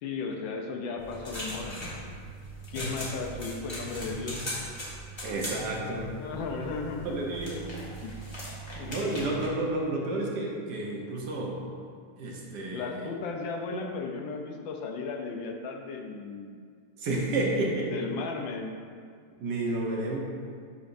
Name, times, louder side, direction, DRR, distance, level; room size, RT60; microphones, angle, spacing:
voice 1, 0.0-1.9 2.7-4.5 6.2-7.2 8.0-8.2 8.7-8.9 12.7-16.5 17.9-18.8, left 4 dB, 80° left, 3 dB, 1.4 m, -35 dB
sound 1, 1.0-9.5, equal, 20° left, 0.9 m, -39 dB
voice 2, 5.2-6.2 7.0-7.7 8.9-11.6 12.2-13.1 17.0-17.9 19.4-20.2, right 2 dB, 65° right, -2 dB, 1.4 m, -31 dB
11.0 x 4.2 x 2.6 m, 2.1 s
omnidirectional pair, 2.1 m